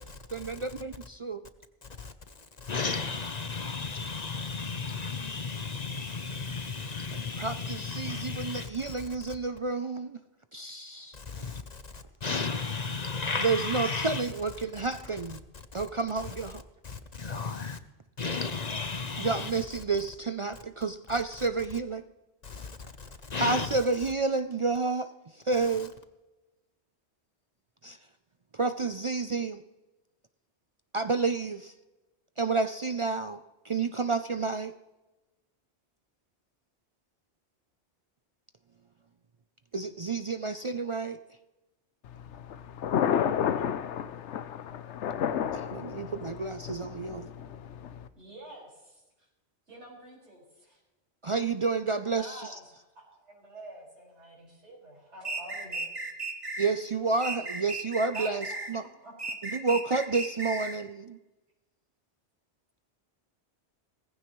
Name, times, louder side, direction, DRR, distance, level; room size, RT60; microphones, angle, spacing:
voice 1, 0.8-1.4 7.1-10.2 10.5-11.2 13.4-15.4 15.7-16.6 19.2-22.0 23.4-25.1 25.4-25.9 27.8-28.0 28.5-29.6 30.9-31.7 32.4-33.4 33.6-34.7 39.7-41.2 45.5-47.3 51.2-52.6 56.6-58.8 59.4-61.2, right 4 dB, 45° right, 0.4 m, -30 dB
voice 2, 2.6-8.9 11.2-11.6 12.2-14.3 15.7-15.9 16.2-16.5 16.8-17.8 18.2-19.8 21.4-21.5 22.4-22.7 23.3-23.8 25.5-25.9, left 4 dB, 45° left, 0.7 m, -34 dB
Thunder, 42.0-48.1, left 9 dB, 85° left, 1.0 m, -31 dB
voice 3, 48.1-49.0 49.7-50.8 51.9-55.9 58.1-59.1, right 2 dB, 90° right, 5.7 m, -47 dB
sound 1, 55.2-56.7 57.2-58.8 59.2-60.8, right 3 dB, 30° right, 1.3 m, -35 dB
18.5 x 15.5 x 3.1 m
omnidirectional pair, 1.1 m